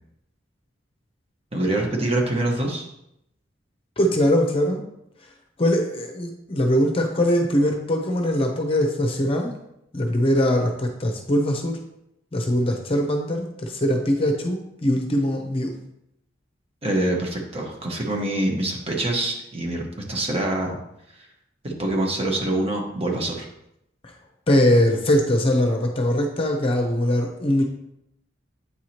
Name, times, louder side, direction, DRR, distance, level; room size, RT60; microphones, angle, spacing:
voice 1, 1.5-2.9 16.8-20.8 21.6-23.5, right 1 dB, 30° right, 0 dB, 1.1 m, -25 dB
voice 2, 4.0-4.8 5.6-9.5 9.9-11.8 12.3-15.7 24.5-27.6, equal, 30° left, 3 dB, 0.7 m, -21 dB
8.4 x 4.7 x 2.9 m, 0.81 s
head